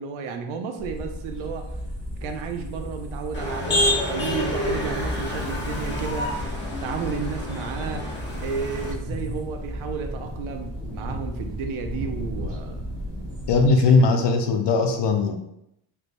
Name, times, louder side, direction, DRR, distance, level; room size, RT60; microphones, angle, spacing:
voice 1, 0.0-1.8 2.2-6.4 6.8-12.8 13.8-13.9, right 6 dB, 75° right, 5 dB, 0.6 m, -32 dB
sound 1, 0.8-13.7, equal, 25° right, 1.2 m, -35 dB
Motor vehicle (road), 3.3-8.9, left 1 dB, 20° left, 0.8 m, -28 dB
sound 2, 8.3-13.8, equal, 55° right, 1.3 m, -38 dB
voice 2, 13.5-15.4, left 3 dB, 55° left, 4 dB, 0.6 m, -19 dB
3.4 x 3.1 x 2.5 m, 0.81 s
cardioid pair, 110°, 50 cm